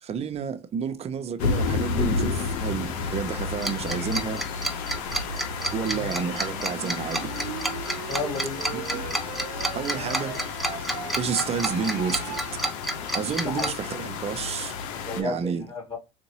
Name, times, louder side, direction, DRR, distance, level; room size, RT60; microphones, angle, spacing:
voice 1, 0.0-4.4 5.7-7.2 8.7-9.1 9.8-10.4 11.2-12.6 13.1-14.8 15.2-15.6, right 6 dB, 40° right, 0.7 m, -30 dB
sound 1, 1.4-15.2, left 5 dB, 80° left, 0.8 m, -31 dB
Tick-tock, 3.6-13.7, right 1 dB, ahead, 0.7 m, -29 dB
sound 2, 4.9-12.7, right 11 dB, 85° right, 0.5 m, -39 dB
voice 2, 8.1-8.6 13.4-13.7 14.9-16.0, left 3 dB, 25° left, 2.4 m, -32 dB
4.0 x 2.5 x 2.9 m
supercardioid pair, 95°, 17 cm